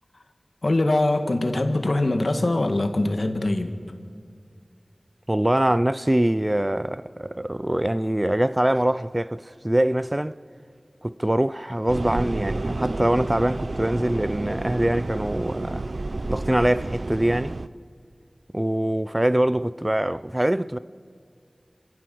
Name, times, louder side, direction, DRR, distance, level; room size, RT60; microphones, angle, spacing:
voice 1, 0.6-3.8, left 2 dB, 70° left, 1.8 m, -23 dB
voice 2, 5.3-10.4 11.0-15.8 16.3-17.6 18.5-20.8, right 1 dB, 25° right, 0.5 m, -23 dB
sound 1, 11.9-17.7, right 2 dB, 75° right, 0.6 m, -30 dB
27.5 x 15.5 x 7.8 m
wide cardioid pair, 45°, 0 cm